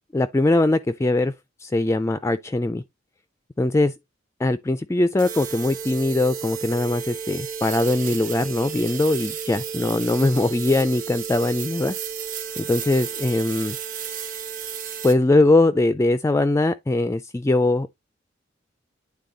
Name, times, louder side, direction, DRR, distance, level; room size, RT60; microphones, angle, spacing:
voice 1, 0.1-1.3 1.6-2.8 3.6-3.9 4.4-12.0 12.6-13.8 15.0-17.9, left 2 dB, 15° left, 0.3 m, -21 dB
sound 1, 5.2-15.1, right 7 dB, 45° right, 1.2 m, -33 dB
9.4 x 3.5 x 3.9 m
head